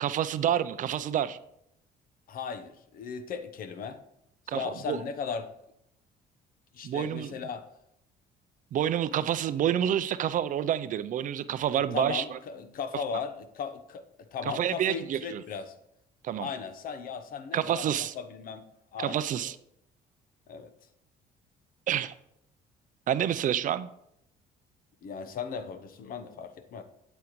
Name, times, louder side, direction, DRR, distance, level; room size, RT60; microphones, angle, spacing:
voice 1, 0.0-1.4 4.5-5.0 6.8-7.3 8.7-12.4 14.5-15.4 16.2-16.5 17.5-18.1 19.0-19.6 21.9-22.1 23.1-23.9, right 10 dB, 50° right, 14 dB, 0.4 m, -28 dB
voice 2, 2.3-4.0 4.5-5.5 6.7-7.6 11.7-14.0 14.3-15.7 16.4-17.9 18.1-18.6 18.9-19.2 19.4-19.5 20.5-20.7 25.0-26.8, left 6 dB, 60° left, 9 dB, 0.9 m, -37 dB
8.5 x 8.2 x 3.1 m, 0.77 s
cardioid pair, 110°, 17 cm